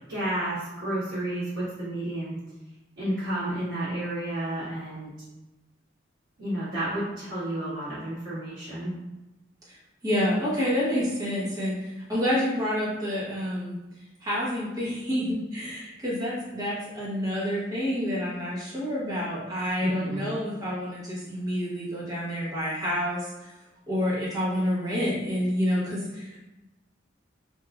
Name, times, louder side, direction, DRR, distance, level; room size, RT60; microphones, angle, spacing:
voice 1, 0.0-2.3 3.0-5.1 6.4-8.9 19.8-20.3, right 1 dB, 50° right, -17 dB, 1.4 m, -31 dB
voice 2, 10.0-13.8 14.2-23.5 23.9-26.4, equal, 20° right, -8 dB, 0.8 m, -28 dB
3.0 x 2.2 x 2.3 m, 1.0 s
head